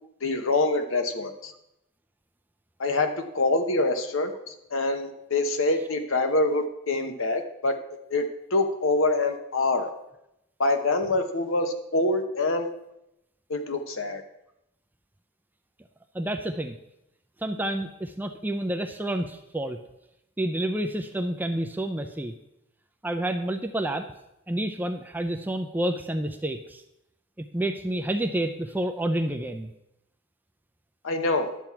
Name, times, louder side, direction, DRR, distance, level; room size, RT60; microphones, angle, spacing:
voice 1, 0.2-1.5 2.8-3.1 3.3-7.7 8.1-8.3 8.5-9.9 10.6-12.7 13.5-14.2 31.0-31.5, left 2 dB, 60° left, 7 dB, 0.9 m, -25 dB
voice 2, 16.1-16.8 17.4-19.8 20.4-22.3 23.0-24.1 24.5-26.8 27.4-29.7, right 1 dB, 10° right, 7 dB, 0.4 m, -29 dB
10.5 x 7.3 x 4.6 m, 0.85 s
head